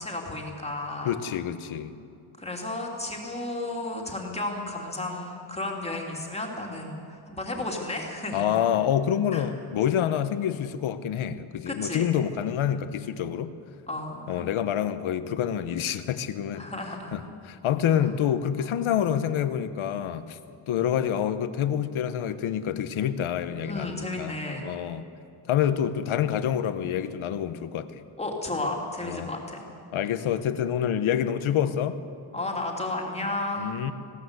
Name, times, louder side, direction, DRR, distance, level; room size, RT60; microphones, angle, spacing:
voice 1, 0.0-1.2 2.4-8.6 9.3-9.4 11.7-12.1 13.9-14.5 16.6-17.2 18.6-18.7 23.6-24.7 28.2-29.6 32.3-33.8, left 2 dB, 15° left, 0 dB, 2.8 m, -33 dB
voice 2, 1.0-1.9 8.3-13.5 14.3-16.7 17.1-20.4 20.7-24.4 24.6-25.0 25.5-28.0 29.0-29.3 29.9-32.0 33.6-33.9, left 9 dB, 80° left, 11 dB, 1.2 m, -27 dB
20.5 x 17.0 x 8.1 m, 2.6 s
wide cardioid pair, 160°, 48 cm